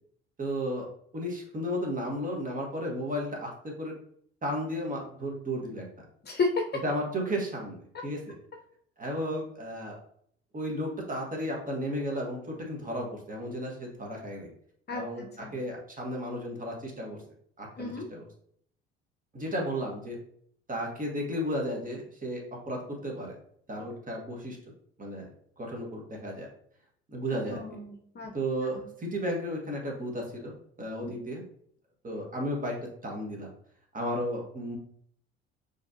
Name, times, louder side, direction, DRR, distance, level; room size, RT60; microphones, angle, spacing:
voice 1, 0.4-3.9 4.4-5.9 6.8-8.3 9.0-10.0 10.5-14.5 14.9-17.2 17.6-18.2 19.3-20.2 20.7-23.3 23.7-24.6 25.0-25.3 25.6-26.5 27.1-27.6 28.3-30.5 30.8-31.4 32.0-32.8 33.0-33.5 33.9-34.8, equal, 25° right, 0 dB, 1.5 m, -34 dB
voice 2, 6.2-6.8 7.9-8.0 14.9-15.5 17.8-18.0 27.5-28.3 28.8-28.9 31.0-31.1, left 3 dB, 30° left, 2 dB, 0.9 m, -32 dB
4.9 x 3.3 x 2.7 m, 0.64 s
hypercardioid pair, 60°, 31 cm